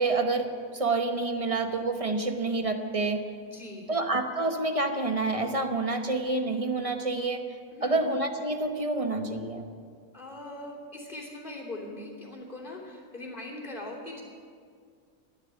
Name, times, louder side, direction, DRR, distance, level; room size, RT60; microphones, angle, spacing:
voice 1, 0.0-3.2 3.9-7.4 7.8-9.6, right 3 dB, 25° right, 5 dB, 1.0 m, -28 dB
voice 2, 3.4-3.9 7.7-8.0 10.1-14.2, left 1 dB, 35° left, -4 dB, 3.3 m, -41 dB
14.5 x 11.0 x 8.0 m, 2.1 s
omnidirectional pair, 1.5 m